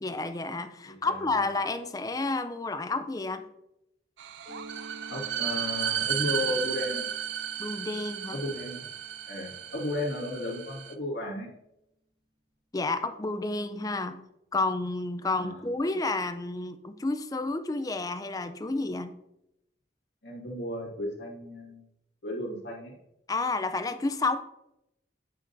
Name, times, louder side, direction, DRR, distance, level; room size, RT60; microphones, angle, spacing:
voice 1, 0.0-3.4 7.6-8.4 12.7-19.2 23.3-24.4, left 3 dB, 20° left, 9 dB, 0.4 m, -30 dB
voice 2, 0.8-1.3 5.1-7.1 8.3-8.8 9.3-11.5 15.4-15.7 20.2-21.8 22.2-22.9, left 1 dB, 70° left, -2 dB, 1.9 m, -34 dB
sound 1, 4.2-10.9, right 10 dB, 80° right, 0.4 m, -34 dB
Mallet percussion, 4.5-10.0, right 1 dB, 25° right, 0.7 m, -50 dB
8.5 x 5.9 x 2.6 m, 0.83 s
head